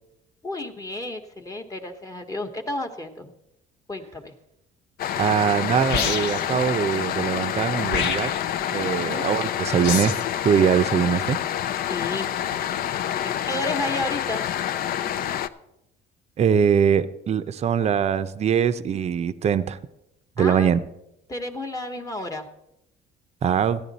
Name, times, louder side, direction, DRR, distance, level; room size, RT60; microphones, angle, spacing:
voice 1, 0.4-3.3 3.9-4.3 9.0-9.3 11.8-12.7 13.2-14.4 20.4-20.7 21.3-22.5, left 2 dB, 20° left, 3 dB, 1.1 m, -32 dB
sound 1, 5.0-15.5, left 10 dB, 60° left, 0.5 m, -27 dB
voice 2, 5.2-8.3 8.7-10.2 10.4-11.4 16.4-19.8 20.4-20.8 23.4-23.8, right 7 dB, 40° right, 13 dB, 0.6 m, -22 dB
sound 2, 5.9-6.6 7.9-8.6 9.8-10.3, left 6 dB, 75° left, 1.1 m, -27 dB
14.0 x 10.0 x 4.1 m, 0.86 s
cardioid pair, 110°, 17 cm